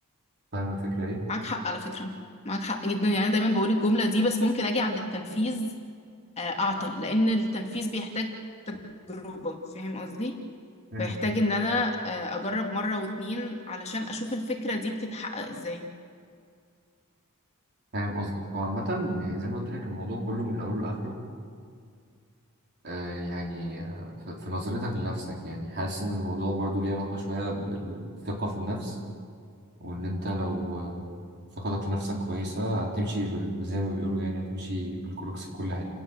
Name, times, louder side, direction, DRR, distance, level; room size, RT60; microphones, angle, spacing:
voice 1, 0.5-1.2 10.9-11.2 17.9-21.2 22.8-29.0 29.8-31.2 31.6-35.9, equal, 50° right, -1 dB, 4.3 m, -31 dB
voice 2, 1.3-2.1 2.4-5.7 6.4-8.3 8.7-8.8 9.1-10.4 11.0-15.8, left 1 dB, 30° left, 2 dB, 2.3 m, -28 dB
29.5 x 18.0 x 7.4 m, 2.2 s
head